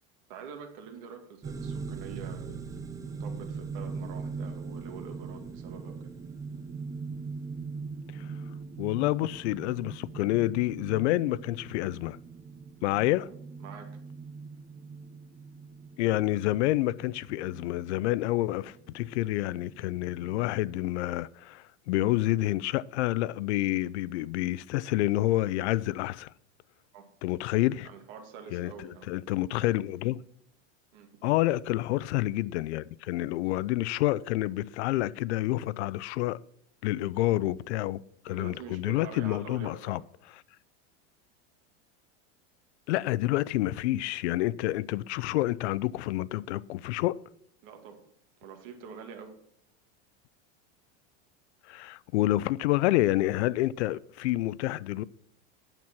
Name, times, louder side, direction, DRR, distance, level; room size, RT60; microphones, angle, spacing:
voice 1, 0.3-2.7 3.2-6.1 8.2-8.5 12.9-13.3 13.6-14.0 26.9-27.0 27.8-29.1 30.9-31.2 38.3-40.0 47.6-48.0 48.4-49.4, right 6 dB, 55° right, 2.3 m, -46 dB
sound 1, 1.4-20.8, right 4 dB, 10° right, 0.5 m, -41 dB
voice 2, 8.8-12.2 12.8-13.3 16.0-26.3 27.2-27.9 28.5-28.7 29.1-30.2 31.2-36.4 36.8-40.0 42.9-47.2 51.7-55.0, left 16 dB, 90° left, 0.5 m, -28 dB
9.1 x 7.4 x 6.1 m
supercardioid pair, 165°, 33 cm